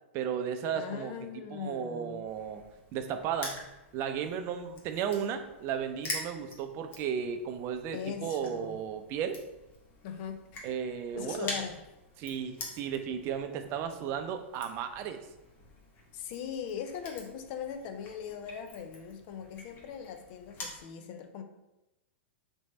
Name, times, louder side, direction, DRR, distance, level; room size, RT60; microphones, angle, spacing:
voice 1, 0.1-1.1 1.5-2.6 2.9-3.6 3.9-9.4 10.6-11.5 12.2-15.2, right 8 dB, 40° right, 7 dB, 0.5 m, -34 dB
voice 2, 0.8-2.3 7.9-8.8 10.0-10.7 11.1-11.8 16.1-21.4, left 7 dB, 50° left, 6 dB, 0.6 m, -40 dB
Crushing, 2.3-20.8, left 2 dB, 35° left, 1.2 m, -46 dB
3.5 x 3.2 x 4.1 m, 0.98 s
hypercardioid pair, 120°, 7 cm